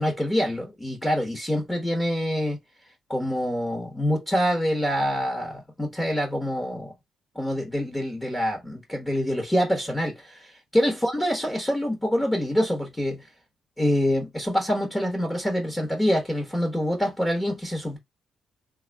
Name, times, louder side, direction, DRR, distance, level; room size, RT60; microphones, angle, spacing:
voice 1, 0.0-2.6 3.1-6.9 7.3-13.2 13.8-18.0, equal, 10° left, 1.2 m, -26 dB
3.5 x 2.4 x 3.4 m
cardioid pair, 110°, 0 cm